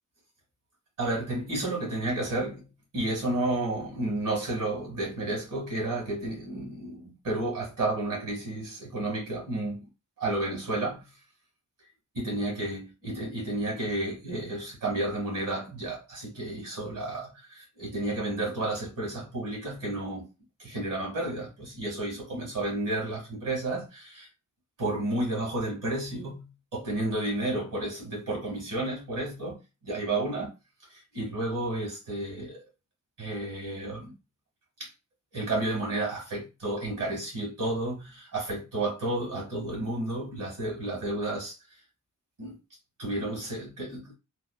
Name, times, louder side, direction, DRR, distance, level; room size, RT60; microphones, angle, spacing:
voice 1, 1.0-2.6 2.9-9.9 10.2-11.0 12.1-20.2 20.6-24.3 24.8-30.5 30.9-32.6 33.2-34.1 34.8-34.9 35.3-41.6 42.4-42.6 43.0-44.1, right 2 dB, 85° right, 1.5 m, -31 dB
3.0 x 2.2 x 2.2 m
wide cardioid pair, 100°, 31 cm